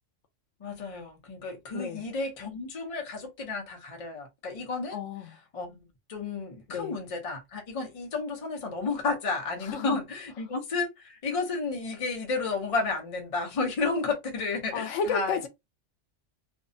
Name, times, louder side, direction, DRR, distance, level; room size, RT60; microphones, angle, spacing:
voice 1, 0.6-5.0 5.5-15.5, left 3 dB, 35° left, 0.6 m, -32 dB
voice 2, 4.9-5.3 6.7-6.9 9.6-10.0 14.7-15.5, left 5 dB, 80° left, 0.9 m, -32 dB
2.6 x 2.2 x 2.6 m
omnidirectional pair, 1.3 m